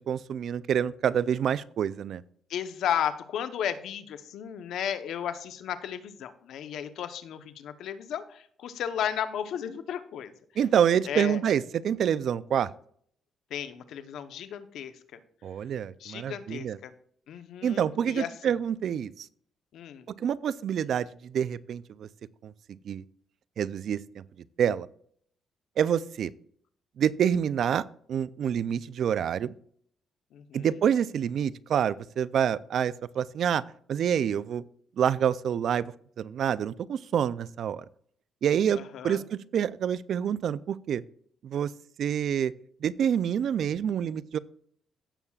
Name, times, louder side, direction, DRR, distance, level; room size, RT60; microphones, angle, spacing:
voice 1, 0.1-2.2 10.6-12.7 15.4-16.8 17.6-19.3 20.2-22.1 22.4-22.5 22.9-23.0 23.6-24.2 24.6-24.9 25.8-26.3 27.0-27.8 28.1-29.5 30.5-33.6 33.9-34.6 35.0-35.8 36.2-37.8 38.4-41.0 41.4-41.7 42.0-42.5 42.8-44.4, right 8 dB, 65° right, 19 dB, 0.4 m, -27 dB
voice 2, 2.5-10.3 11.0-11.4 13.5-15.2 16.0-16.9 17.3-18.6 19.7-20.1 30.3-30.7 38.7-39.3, left 9 dB, 75° left, 11 dB, 0.8 m, -34 dB
16.0 x 7.2 x 2.4 m, 0.62 s
cardioid pair, 90°, 0 cm